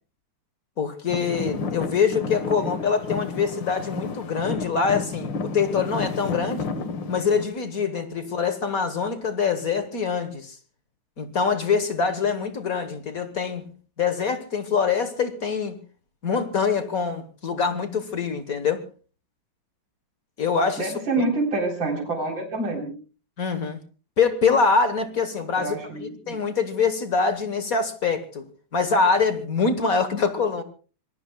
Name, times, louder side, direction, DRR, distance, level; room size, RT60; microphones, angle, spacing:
voice 1, 0.8-6.6 7.1-10.6 11.2-13.7 14.0-15.8 16.2-18.8 20.4-20.9 23.4-23.8 24.2-28.4 28.7-30.6, left 5 dB, 45° left, 1.6 m, -24 dB
Traffic noise roadway noise / Engine, 1.1-7.5, left 4 dB, 60° left, 2.1 m, -31 dB
voice 2, 2.5-2.9 20.8-23.0 25.6-26.4, right 2 dB, 60° right, 4.5 m, -27 dB
26.0 x 21.0 x 2.3 m
omnidirectional pair, 2.4 m